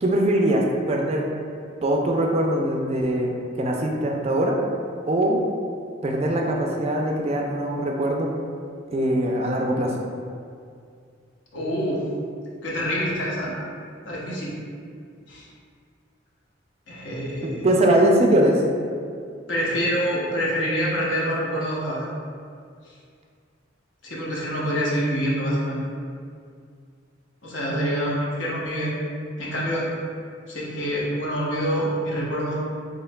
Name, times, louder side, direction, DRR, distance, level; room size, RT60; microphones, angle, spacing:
voice 1, 0.0-1.3 1.8-3.3 3.6-4.6 5.1-5.4 6.0-8.3 8.9-9.9 17.6-18.6 27.7-28.4, right 1 dB, 30° right, 0 dB, 0.3 m, -22 dB
voice 2, 11.5-12.1 12.6-13.5 14.0-14.5 15.3-15.5 16.9-17.7 19.5-22.0 22.9-23.0 24.0-25.8 27.4-28.9 29.4-29.9 30.5-32.6, equal, 70° left, -5 dB, 0.8 m, -26 dB
4.5 x 3.0 x 2.2 m, 2.2 s
head